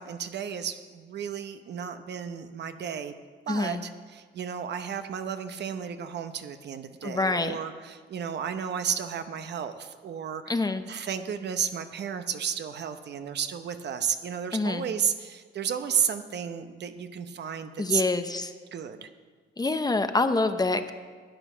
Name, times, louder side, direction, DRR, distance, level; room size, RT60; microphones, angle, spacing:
voice 1, 0.0-3.1 3.5-10.6 10.9-18.0 18.7-19.1, right 8 dB, 60° right, 9 dB, 0.8 m, -33 dB
voice 2, 3.5-3.8 7.0-7.6 10.5-10.8 14.5-14.9 17.8-18.5 19.6-20.9, left 3 dB, 20° left, 9 dB, 0.7 m, -26 dB
12.5 x 9.0 x 6.1 m, 1.5 s
cardioid pair, 90°, 20 cm